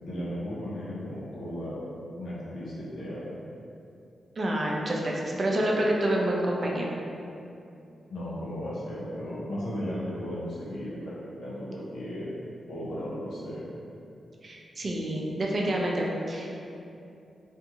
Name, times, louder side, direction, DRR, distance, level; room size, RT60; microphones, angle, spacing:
voice 1, 0.0-1.8 2.2-3.5 8.1-12.3 12.7-13.7, equal, 85° left, -8 dB, 0.6 m, -35 dB
voice 2, 4.4-6.9 14.4-16.5, right 1 dB, 50° right, -2 dB, 0.5 m, -28 dB
2.5 x 2.4 x 2.8 m, 2.6 s
supercardioid pair, 50°, 0 cm